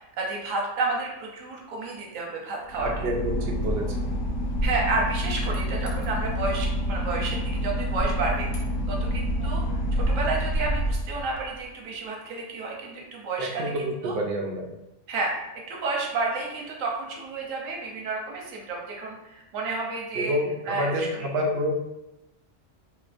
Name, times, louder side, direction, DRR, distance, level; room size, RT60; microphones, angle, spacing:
voice 1, 0.0-3.1 4.6-14.2 15.1-20.3 20.7-21.3, right 3 dB, 85° right, -1 dB, 1.1 m, -31 dB
Boat Water vehicle / Engine, 2.7-11.6, equal, 85° left, 1.0 m, -27 dB
voice 2, 2.8-4.1 13.4-14.7 20.1-21.7, equal, 60° right, 1 dB, 0.7 m, -28 dB
3.1 x 2.8 x 2.5 m, 0.94 s
omnidirectional pair, 1.3 m